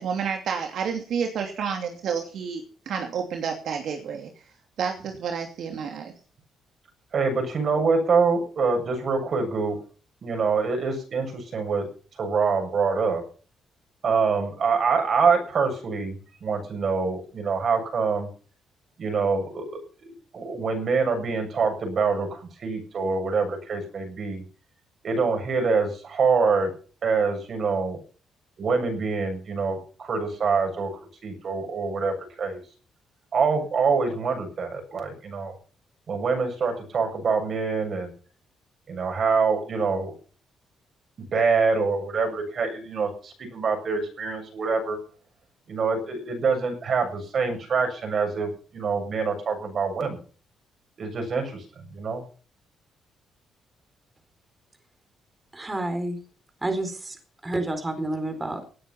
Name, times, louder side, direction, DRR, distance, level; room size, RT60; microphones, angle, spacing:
voice 1, 0.0-4.4 4.8-6.1, right 6 dB, 70° right, 3 dB, 2.8 m, -30 dB
voice 2, 7.1-9.8 10.2-11.9 12.2-13.2 14.0-16.2 16.4-18.3 19.0-24.4 25.0-26.7 27.0-28.0 28.6-30.9 31.2-32.6 33.3-35.5 36.1-38.1 38.9-40.1 41.2-45.0 45.7-50.2 51.0-51.6 51.9-52.2, right 4 dB, 50° right, 5 dB, 7.4 m, -25 dB
voice 3, 55.5-56.2 56.6-58.6, right 2 dB, 20° right, 7 dB, 4.1 m, -29 dB
18.5 x 10.0 x 5.7 m, 0.40 s
cardioid pair, 90°, 0 cm